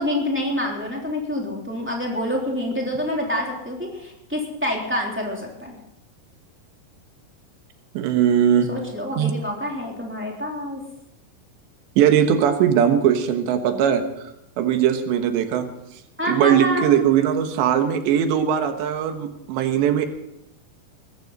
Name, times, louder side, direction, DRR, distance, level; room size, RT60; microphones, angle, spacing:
voice 1, 0.0-5.8 8.6-10.8 16.2-16.9, equal, 5° right, -2 dB, 2.5 m, -27 dB
voice 2, 8.0-8.7 9.2-9.3 12.0-15.7 16.3-20.1, right 9 dB, 85° right, 7 dB, 3.5 m, -20 dB
20.0 x 14.0 x 4.1 m, 0.84 s
omnidirectional pair, 4.9 m